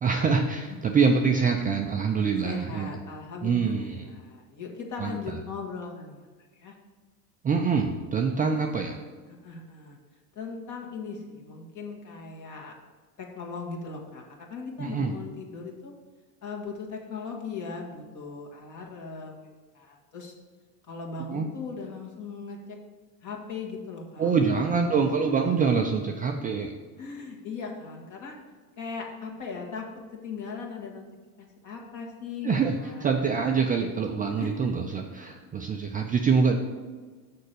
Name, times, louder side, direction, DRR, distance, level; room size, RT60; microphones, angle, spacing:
voice 1, 0.0-2.9 3.4-4.1 5.0-5.4 7.4-9.0 14.8-15.1 21.3-21.5 24.2-26.7 32.4-36.6, right 5 dB, 20° right, 2 dB, 0.4 m, -25 dB
voice 2, 2.4-6.3 6.5-6.7 8.4-8.8 9.4-10.0 10.4-12.7 13.2-15.9 16.4-19.5 19.7-20.3 20.9-22.8 23.2-25.7 27.0-28.4 28.8-29.9 30.2-31.1 31.4-33.4 34.4-34.7, left 4 dB, 40° left, 1 dB, 1.8 m, -39 dB
6.5 x 4.5 x 6.7 m, 1.4 s
supercardioid pair, 115°, 46 cm